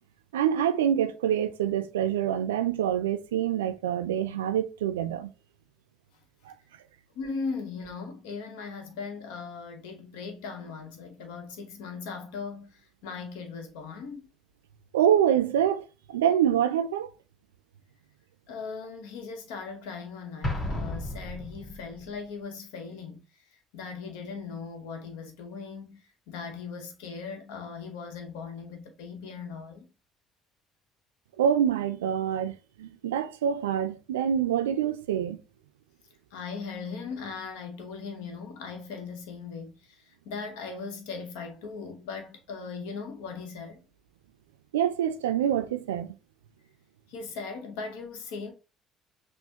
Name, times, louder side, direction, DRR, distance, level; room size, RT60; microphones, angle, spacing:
voice 1, 0.3-5.3 14.9-17.1 31.4-35.4 44.7-46.2, right 9 dB, 90° right, 0.3 m, -26 dB
voice 2, 7.1-12.7 13.0-14.2 18.5-23.2 23.7-26.0 26.3-29.9 36.3-39.7 40.2-43.8 47.1-48.5, left 5 dB, 80° left, 0.8 m, -38 dB
Explosion, 20.4-22.1, left 1 dB, 35° left, 1.5 m, -33 dB
6.0 x 2.1 x 2.8 m
hypercardioid pair, 60°, 0 cm